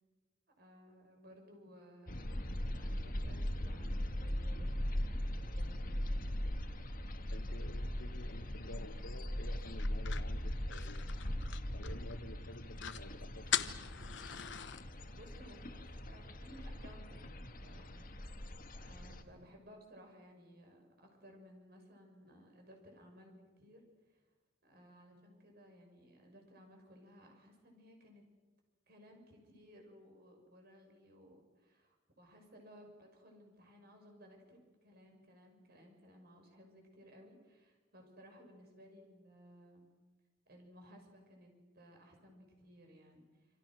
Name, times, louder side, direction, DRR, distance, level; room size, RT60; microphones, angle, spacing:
voice 1, 0.6-6.2 15.1-24.2 24.6-28.2 28.9-39.9 40.5-43.5, equal, 55° right, 3 dB, 6.7 m, -59 dB
sound 1, 2.1-19.2, equal, 45° left, 1.8 m, -40 dB
voice 2, 7.3-11.0 11.7-13.7, left 1 dB, 85° left, 5 dB, 1.4 m, -51 dB
sound 2, 9.8-12.2 12.5-12.6 12.8-13.1 13.5-14.8, left 10 dB, 70° left, 1.0 m, -40 dB
27.5 x 26.5 x 6.4 m, 1.2 s
head